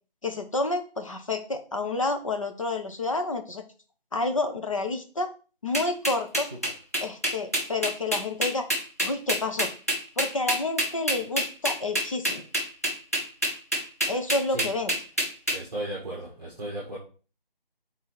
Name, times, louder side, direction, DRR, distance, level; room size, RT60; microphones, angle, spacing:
voice 1, 0.2-3.6 4.1-5.3 5.6-6.5 7.0-8.7 9.0-9.7 10.2-12.4 14.1-14.9, left 2 dB, 35° left, 6 dB, 0.9 m, -29 dB
sound 1, 5.7-15.6, equal, 15° left, 0.6 m, -26 dB
voice 2, 15.5-17.0, right 1 dB, 10° right, -6 dB, 1.2 m, -35 dB
5.6 x 4.2 x 5.8 m, 0.36 s
figure-of-eight pair, 165°, 29 cm